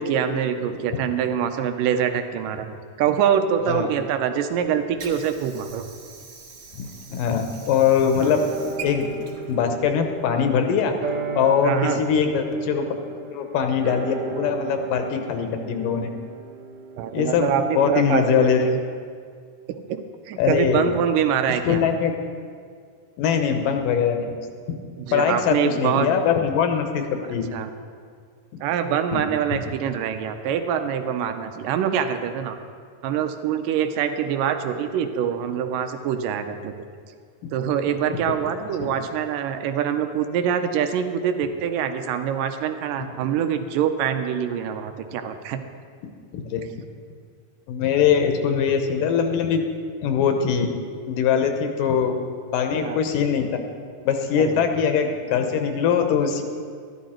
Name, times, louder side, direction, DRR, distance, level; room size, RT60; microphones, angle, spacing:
voice 1, 0.0-5.8 11.6-12.0 17.0-18.7 19.9-21.8 25.0-26.1 27.5-27.7 28.6-32.6 33.0-36.7 37.5-45.6 52.8-53.0 54.4-54.6, right 8 dB, 85° right, 8 dB, 2.3 m, -25 dB
Water / Sink (filling or washing), 4.5-10.5, right 5 dB, 50° right, 1.7 m, -43 dB
voice 2, 6.7-8.4 8.8-9.1 9.5-11.0 11.4-12.9 13.3-16.1 17.1-17.5 17.8-18.6 20.4-20.9 21.6-22.1 23.2-24.4 25.1-27.0 27.3-27.4 29.1-29.2 38.8-38.9 46.3-46.6 47.7-49.6 50.0-50.7 51.1-52.1 52.5-53.5 54.0-56.4, left 7 dB, 80° left, 5 dB, 2.6 m, -22 dB
sound 1, 8.2-18.8 19.1-19.2, right 3 dB, 65° right, 1.5 m, -35 dB
13.0 x 11.5 x 4.4 m, 2.1 s
omnidirectional pair, 3.9 m